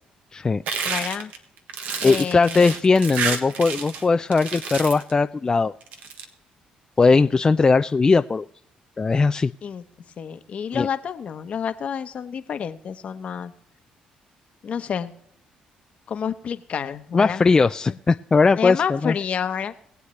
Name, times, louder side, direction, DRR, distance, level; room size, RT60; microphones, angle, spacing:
voice 1, 0.3-0.6 2.0-5.7 7.0-8.5 9.0-9.5 10.7-10.9 17.1-19.1, left 4 dB, 25° left, 9 dB, 0.4 m, -19 dB
sound 1, 0.7-4.0 4.3-5.1 5.8-6.2, right 5 dB, 75° right, 1.4 m, -29 dB
voice 2, 0.8-1.3 2.0-2.7 7.1-7.3 9.6-9.8 10.2-13.5 14.6-15.1 16.1-17.5 17.9-18.0 18.6-19.7, left 7 dB, 55° left, 10 dB, 1.0 m, -29 dB
21.5 x 8.1 x 3.2 m, 0.72 s
cardioid pair, 80°, 3 cm